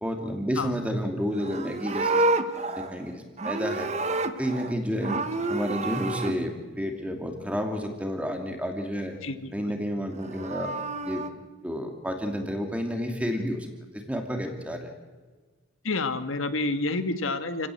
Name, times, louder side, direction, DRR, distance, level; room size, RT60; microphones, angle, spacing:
voice 1, 0.0-2.3 2.8-3.9 4.4-5.2 5.5-9.1 9.5-10.7 11.0-11.2 11.6-13.7 13.9-14.9, equal, 5° right, 3 dB, 2.7 m, -30 dB
Livestock farm animals working animals, 1.3-4.7 5.0-6.3 10.1-11.3, right 2 dB, 35° right, 1.2 m, -29 dB
voice 2, 9.2-9.7 15.8-17.7, left 3 dB, 90° left, 9 dB, 1.7 m, -29 dB
29.0 x 17.0 x 7.8 m, 1.4 s
head